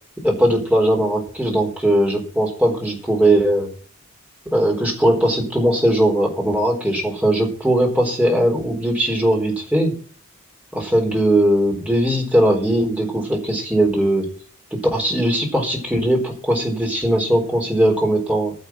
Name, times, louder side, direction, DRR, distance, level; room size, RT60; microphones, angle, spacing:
voice 1, 0.2-3.7 4.5-10.0 10.7-14.3 14.9-18.5, right 1 dB, 5° right, 0 dB, 3.9 m, -19 dB
10.5 x 7.2 x 8.5 m, 0.43 s
head